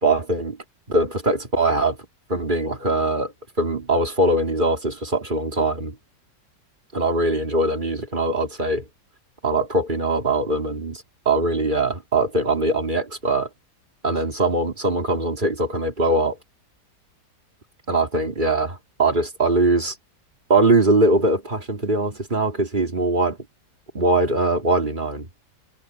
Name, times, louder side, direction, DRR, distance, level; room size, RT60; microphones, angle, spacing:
voice 1, 0.0-0.6 0.9-2.0 2.3-3.3 3.6-6.0 6.9-8.9 9.4-13.5 14.0-16.4 17.9-19.9 20.5-23.4 23.9-25.3, right 2 dB, 30° right, 2.7 m, -21 dB
omnidirectional pair, 1.8 m